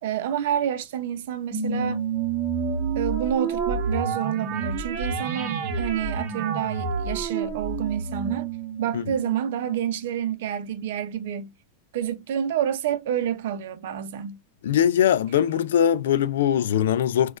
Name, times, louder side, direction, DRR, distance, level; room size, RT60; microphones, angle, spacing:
voice 1, 0.0-2.0 2.9-8.5 8.8-11.5 11.9-14.4, right 9 dB, 60° right, 0.6 m, -28 dB
sound 1, 1.5-10.3, right 5 dB, 35° right, 1.0 m, -29 dB
voice 2, 14.6-17.4, left 9 dB, 85° left, 0.3 m, -21 dB
4.3 x 2.3 x 2.3 m
supercardioid pair, 170°, 0 cm